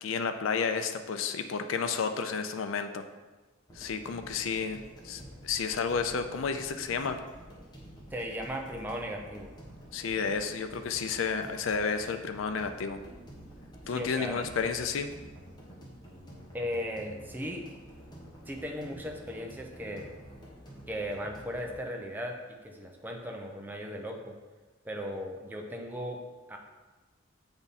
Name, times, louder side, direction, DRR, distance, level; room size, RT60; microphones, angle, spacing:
voice 1, 0.0-3.0 3.8-7.2 9.9-13.0 13.9-15.1, left 5 dB, 85° left, 8 dB, 0.4 m, -31 dB
sound 1, 3.7-21.8, equal, 20° left, 1.2 m, -49 dB
voice 2, 8.1-9.5 13.9-14.5 16.5-17.7 18.5-20.1 20.9-22.4 22.6-24.4 24.8-26.2 26.5-26.6, equal, 10° right, 1 dB, 0.6 m, -37 dB
7.0 x 3.5 x 4.1 m, 1.2 s
head